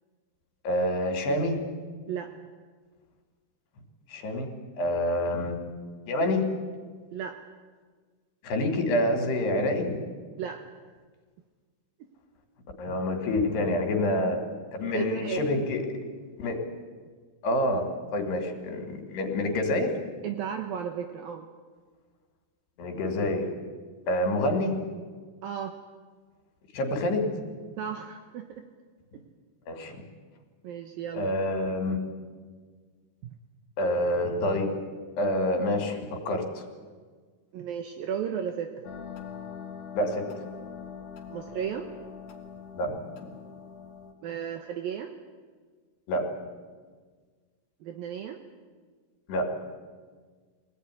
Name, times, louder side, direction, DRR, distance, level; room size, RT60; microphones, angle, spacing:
voice 1, 0.6-1.6 4.1-4.5 4.8-5.6 6.1-6.4 8.4-10.0 12.8-14.4 14.7-15.8 16.4-16.6 17.4-20.0 22.8-23.5 24.1-24.7 26.7-27.3 29.7-30.0 31.1-32.0 33.8-34.7 35.2-36.6 40.0-40.3 42.7-43.0 46.1-46.3 49.3-49.5, left 1 dB, 75° left, 5 dB, 4.8 m, -27 dB
voice 2, 14.8-15.4 20.2-21.5 25.4-25.7 27.8-28.6 29.1-29.2 30.6-31.3 37.5-38.7 41.3-41.9 44.2-45.1 47.8-48.4, right 8 dB, 70° right, 6 dB, 2.7 m, -34 dB
sound 1, 38.8-44.1, left 7 dB, 55° left, 3.3 m, -43 dB
23.5 x 18.0 x 9.9 m, 1.5 s
omnidirectional pair, 4.8 m